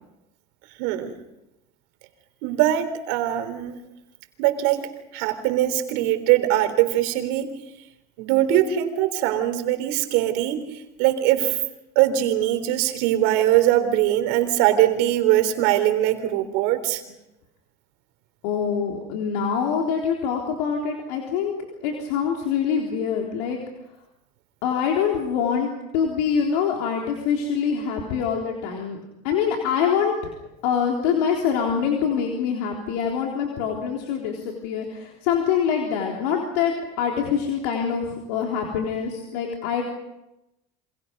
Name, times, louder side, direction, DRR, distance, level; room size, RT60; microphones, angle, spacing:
voice 1, 0.8-1.2 2.4-3.8 4.4-4.8 5.1-7.6 8.2-11.6 11.9-17.0, right 13 dB, 75° right, 8 dB, 3.5 m, -21 dB
voice 2, 18.4-23.6 24.6-29.0 29.2-30.3 30.6-39.8, left 7 dB, 80° left, 0 dB, 3.8 m, -25 dB
29.0 x 26.0 x 5.4 m, 0.92 s
supercardioid pair, 105°, 20 cm